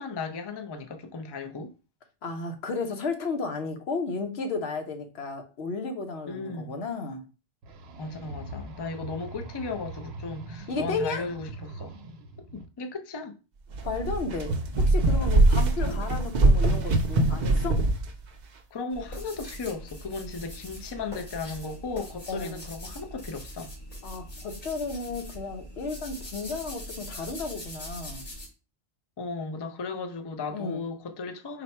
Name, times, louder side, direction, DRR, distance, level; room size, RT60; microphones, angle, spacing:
voice 1, 0.0-1.7 6.3-6.7 8.0-12.0 12.5-13.4 15.6-16.1 18.7-23.7 29.2-31.6, left 4 dB, 35° left, 0.4 m, -36 dB
voice 2, 2.2-7.3 10.7-11.3 13.8-17.8 22.3-22.7 24.0-28.3 30.5-30.8, left 4 dB, 90° left, 1.0 m, -33 dB
sound 1, 7.6-12.6, right 2 dB, 85° right, 0.9 m, -42 dB
sound 2, 13.7-18.1, right 2 dB, 55° right, 0.6 m, -22 dB
sound 3, 18.9-28.5, equal, 60° left, 2.7 m, -42 dB
4.1 x 2.1 x 4.3 m
omnidirectional pair, 1.0 m